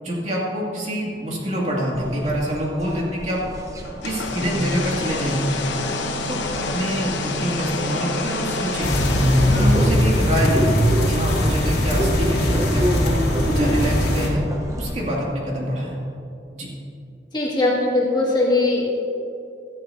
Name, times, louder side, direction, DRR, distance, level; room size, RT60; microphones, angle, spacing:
voice 1, 0.0-3.4 4.0-5.5 6.3-8.9 9.5-10.8 11.1-13.2 13.5-14.4 14.8-16.0 16.5-16.7, equal, 40° right, -4 dB, 2.5 m, -26 dB
sound 1, 1.9-14.9, right 1 dB, 20° right, 1.0 m, -31 dB
sound 2, 3.8-10.6, left 2 dB, 80° left, 1.1 m, -27 dB
sound 3, 8.8-14.3, equal, 65° left, 2.4 m, -20 dB
voice 2, 17.3-18.8, left 2 dB, 25° left, -5 dB, 2.3 m, -20 dB
16.5 x 13.0 x 2.8 m, 2.6 s
head